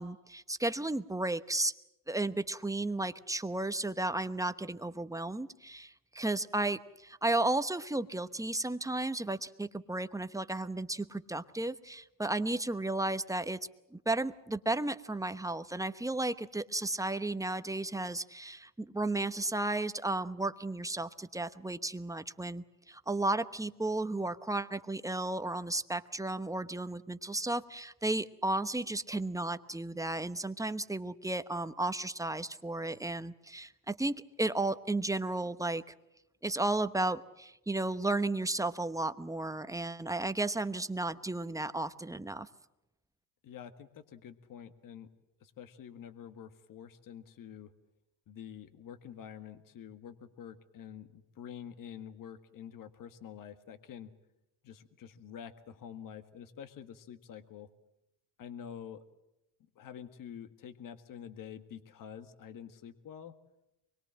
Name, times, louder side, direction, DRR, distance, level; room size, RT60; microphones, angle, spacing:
voice 1, 0.0-1.7 2.1-13.6 13.9-35.9 36.4-42.5, right 2 dB, 10° right, 11 dB, 1.0 m, -34 dB
voice 2, 43.4-45.1 45.4-47.7 48.3-54.1 54.6-57.7 58.4-59.0 59.8-63.3, left 8 dB, 55° left, 10 dB, 1.7 m, -47 dB
24.5 x 22.0 x 7.6 m, 0.91 s
supercardioid pair, 90°, 40 cm